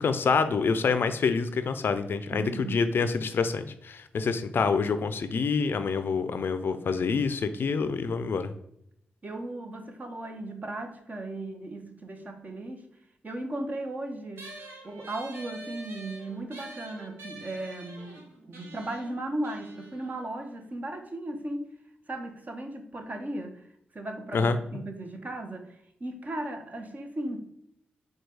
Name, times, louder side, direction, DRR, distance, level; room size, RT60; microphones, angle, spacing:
voice 1, 0.0-8.5 24.3-24.6, left 5 dB, 65° left, 10 dB, 0.4 m, -27 dB
voice 2, 2.3-2.9 4.5-4.8 9.2-12.9 13.2-21.7 22.1-23.6 23.9-27.4, right 1 dB, 40° right, 5 dB, 0.9 m, -36 dB
sound 1, 14.4-21.2, right 1 dB, 80° right, 1.0 m, -47 dB
4.6 x 2.3 x 4.6 m, 0.74 s
supercardioid pair, 45°, 4 cm